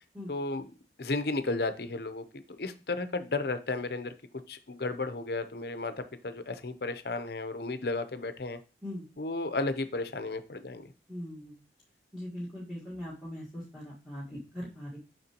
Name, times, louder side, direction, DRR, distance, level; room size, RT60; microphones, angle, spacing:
voice 1, 0.3-0.7 1.0-4.1 4.5-8.6 9.2-10.9, left 3 dB, 60° left, 10 dB, 0.7 m, -33 dB
voice 2, 11.1-11.6 12.1-15.0, left 1 dB, ahead, -10 dB, 1.6 m, -40 dB
6.8 x 5.9 x 2.9 m, 0.32 s
head